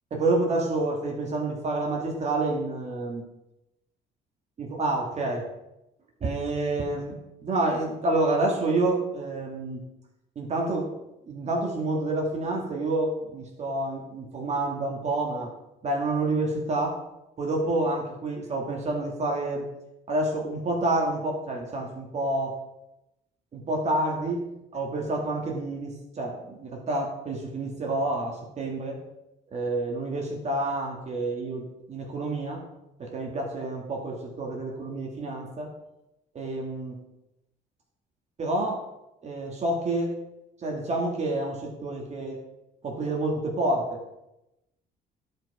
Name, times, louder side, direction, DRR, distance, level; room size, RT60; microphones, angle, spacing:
voice 1, 0.1-3.2 4.6-5.4 6.2-9.8 10.4-10.9 11.3-15.5 15.8-17.0 17.4-19.6 20.1-22.5 23.5-24.5 24.7-29.0 29.5-32.6 33.0-35.7 36.3-37.0 38.4-38.8 39.2-40.2 40.6-42.4 42.8-44.0, right 2 dB, 40° right, 0 dB, 2.0 m, -28 dB
10.5 x 5.3 x 4.9 m, 0.91 s
cardioid pair, 110°, 17 cm